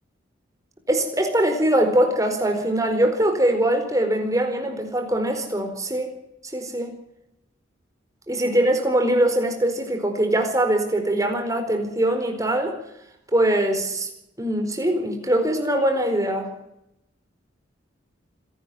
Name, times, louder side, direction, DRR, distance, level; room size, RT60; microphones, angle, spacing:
voice 1, 0.9-6.1 6.5-6.9 8.3-12.8 13.3-14.1 14.4-16.5, right 1 dB, 20° right, 5 dB, 4.5 m, -22 dB
26.0 x 12.0 x 9.3 m, 0.83 s
head